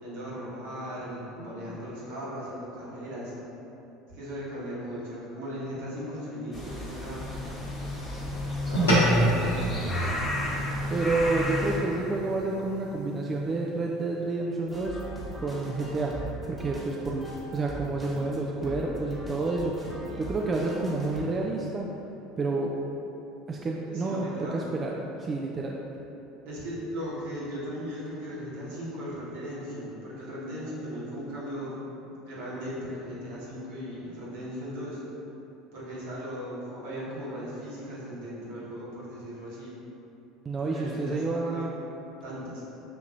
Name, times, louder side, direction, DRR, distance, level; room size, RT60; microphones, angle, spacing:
voice 1, 0.0-3.3 4.1-7.3 8.1-8.2 8.6-10.2 23.8-24.6 26.4-31.8 32.2-35.0 35.7-39.7 40.6-41.7 42.2-42.6, equal, 70° right, -8 dB, 1.3 m, -37 dB
sound 1, 6.5-11.8, left 1 dB, 30° left, 1.2 m, -33 dB
sound 2, 8.7-13.4, equal, 80° left, 0.9 m, -28 dB
voice 2, 10.9-15.0 15.4-16.2 16.5-19.7 20.1-21.9 22.4-22.7 23.5-24.9 25.2-25.8 40.5-41.7, right 3 dB, 30° right, -2 dB, 0.3 m, -29 dB
sound 3, 14.7-21.2, right 1 dB, 15° right, 1.3 m, -40 dB
5.9 x 2.9 x 2.5 m, 3.0 s
hypercardioid pair, 70°, 0 cm